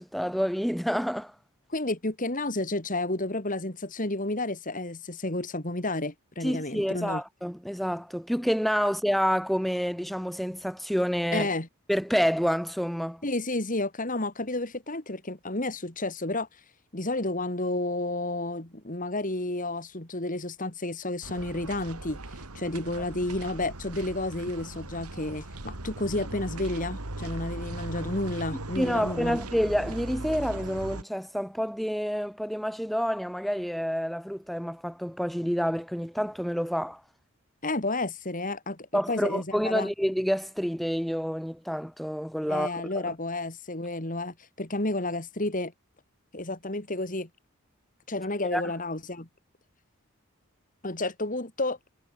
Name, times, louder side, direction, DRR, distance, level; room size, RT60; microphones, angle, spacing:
voice 1, 0.0-1.3 6.4-11.5 11.9-13.2 28.8-37.0 38.9-43.1 48.5-48.6, equal, ahead, 3.2 m, -28 dB
voice 2, 1.7-7.2 11.3-11.7 13.2-16.5 16.9-22.2 22.5-29.4 37.6-39.9 42.5-45.7 46.3-47.3 48.1-49.3 50.8-51.8, left 2 dB, 35° left, 2.9 m, -31 dB
sound 1, 21.2-31.0, right 2 dB, 90° right, 2.8 m, -39 dB
head